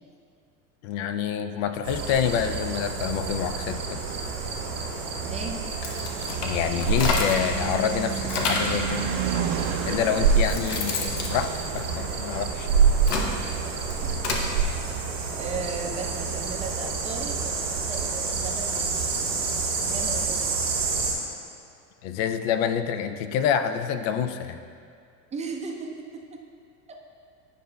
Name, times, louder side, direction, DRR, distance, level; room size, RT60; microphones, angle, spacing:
voice 1, 0.8-4.0 6.4-9.0 9.8-12.7 22.0-24.6, left 8 dB, 45° left, 9 dB, 0.4 m, -27 dB
sound 1, 1.8-21.1, right 5 dB, 85° right, 1.6 m, -28 dB
voice 2, 5.2-5.6 14.0-14.1 15.4-19.1 19.9-20.6 25.3-26.4, right 4 dB, 15° right, 1 dB, 0.5 m, -36 dB
Car passing by / Truck / Engine, 5.5-15.5, right 8 dB, 50° right, 0.7 m, -35 dB
sound 2, 5.7-7.6 7.9-8.8 9.6-9.7 10.2-12.3 12.8-14.5, left 3 dB, 65° left, 1.0 m, -30 dB
9.9 x 5.3 x 2.3 m, 2.3 s
hypercardioid pair, 85°, 50 cm